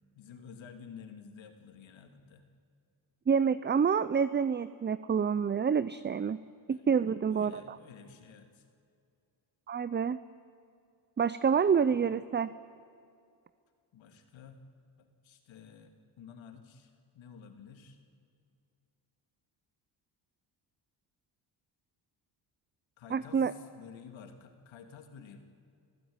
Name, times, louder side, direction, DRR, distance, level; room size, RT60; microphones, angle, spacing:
voice 1, 0.1-2.4 6.7-6.8 7.3-8.7 11.9-12.0 13.9-14.6 15.0-18.0 23.0-25.4, left 6 dB, 75° left, 6 dB, 2.7 m, -51 dB
voice 2, 3.3-6.4 6.7-7.8 9.7-10.2 11.2-12.5 23.1-23.5, right 6 dB, 25° right, 15 dB, 0.5 m, -28 dB
26.0 x 15.5 x 9.7 m, 2.4 s
cardioid pair, 80°, 46 cm